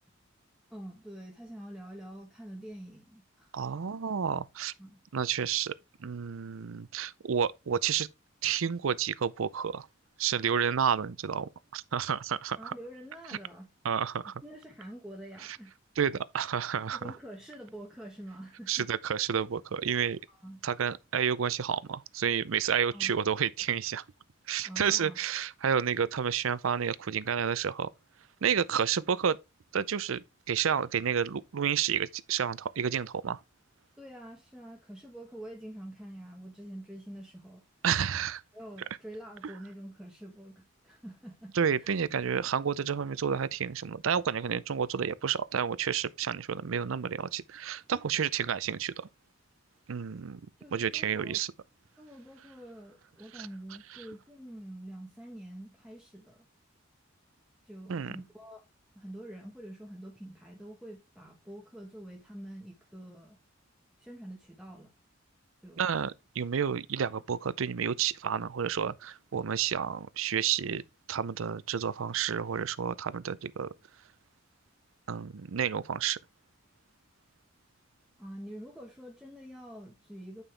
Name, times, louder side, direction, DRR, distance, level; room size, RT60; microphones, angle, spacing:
voice 1, 0.7-3.6 4.8-5.0 12.6-13.7 14.4-15.7 16.9-18.9 20.3-20.6 22.9-23.1 24.6-25.2 34.0-37.6 38.5-41.9 50.6-51.4 52.0-56.4 57.7-58.6 58.9-63.4 64.0-64.9 65.6-65.9 78.2-80.4, right 1 dB, 5° right, 1.2 m, -46 dB
voice 2, 3.5-4.7 5.1-5.7 6.0-8.1 8.4-9.9 10.2-12.7 13.8-14.3 15.4-15.6 16.0-17.0 18.7-20.2 20.6-24.0 24.5-27.9 28.4-29.4 29.7-33.4 37.8-38.4 41.5-49.1 49.9-50.4 50.7-51.5 53.3-53.5 57.9-58.2 65.8-70.8 71.1-73.7 75.1-76.2, right 7 dB, 90° right, 0.5 m, -30 dB
9.1 x 5.4 x 3.3 m
head